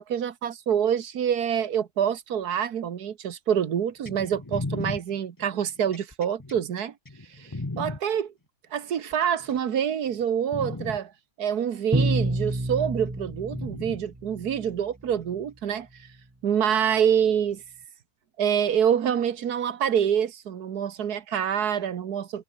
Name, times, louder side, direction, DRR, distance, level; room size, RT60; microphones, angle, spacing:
voice 1, 0.0-6.9 7.4-7.5 7.8-8.3 8.7-11.1 11.4-15.9 16.4-17.6 18.4-22.4, right 8 dB, 75° right, 1.8 m, -26 dB
sound 1, 4.0-8.0 8.9-9.6 10.1-10.2 10.5-11.0 12.1-12.2 13.5-14.0 15.1-15.2, left 2 dB, 15° left, 1.1 m, -35 dB
Bowed string instrument, 11.9-14.7, right 1 dB, 10° right, 1.4 m, -28 dB
omnidirectional pair, 1.7 m